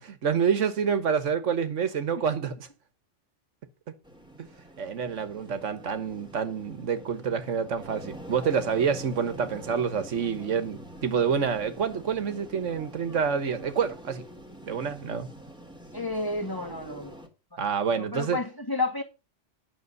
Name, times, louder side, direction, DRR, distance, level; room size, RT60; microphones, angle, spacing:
voice 1, 0.0-2.7 4.4-4.5 4.8-14.2 14.6-15.3 17.6-18.4, right 6 dB, 75° right, 1.5 m, -27 dB
sound 1, 4.0-17.3, right 1 dB, 5° right, 2.0 m, -45 dB
voice 2, 15.9-17.2 17.5-17.6 17.9-19.0, left 3 dB, 15° left, 1.9 m, -31 dB
9.5 x 6.7 x 6.6 m
omnidirectional pair, 1.3 m